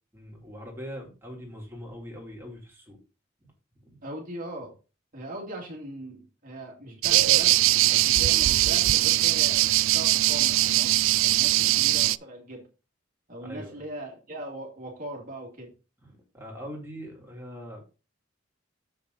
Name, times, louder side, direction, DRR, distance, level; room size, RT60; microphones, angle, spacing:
voice 1, 0.1-3.0 3.4-3.5 3.8-4.0 11.5-11.7 13.4-13.8 16.0-17.8, equal, 10° right, -2 dB, 3.2 m, -42 dB
voice 2, 4.0-4.7 5.1-7.6 7.9-11.0 11.2-12.6 13.3-15.7, right 1 dB, 45° right, -1 dB, 2.2 m, -39 dB
sound 1, 7.0-12.2, right 17 dB, 80° right, 0.3 m, -21 dB
7.3 x 6.5 x 4.0 m, 0.33 s
head